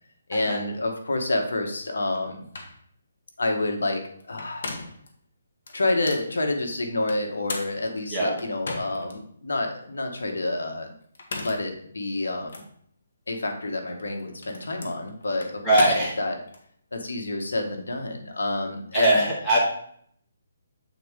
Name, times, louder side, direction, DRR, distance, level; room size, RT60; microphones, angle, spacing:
voice 1, 0.3-2.5 3.4-4.7 5.7-10.9 11.4-12.6 13.3-16.4 16.9-19.3, left 2 dB, 90° left, 4 dB, 1.4 m, -28 dB
sound 1, 2.1-2.2 2.5-2.8 4.2-5.1 5.7-6.3 7.1-9.2 9.7-9.8 11.0-11.7 12.5-12.7 13.9-16.6, left 3 dB, 65° left, 1.4 m, -36 dB
voice 2, 15.6-16.2 18.9-19.6, right 1 dB, 5° left, -8 dB, 1.3 m, -21 dB
7.7 x 4.2 x 3.7 m, 0.64 s
hypercardioid pair, 165°, 0 cm